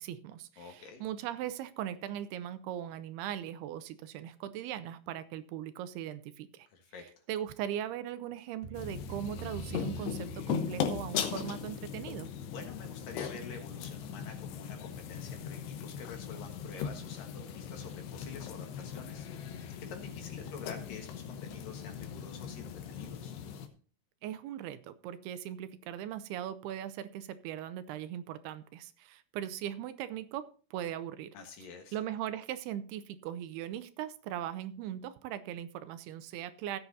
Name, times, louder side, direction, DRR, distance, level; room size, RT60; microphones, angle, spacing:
voice 1, 0.0-6.7 7.3-12.3 24.2-30.4 30.7-31.3 31.9-36.8, right 11 dB, 80° right, 12 dB, 2.5 m, -39 dB
voice 2, 0.6-1.0 6.7-7.2 12.5-23.3 31.3-32.0, left 4 dB, 65° left, 4 dB, 2.9 m, -48 dB
sound 1, 8.6-11.1, right 6 dB, 15° right, 3.5 m, -46 dB
sound 2, 8.7-23.7, left 8 dB, 85° left, 3.2 m, -39 dB
16.0 x 8.3 x 2.7 m, 0.40 s
omnidirectional pair, 4.7 m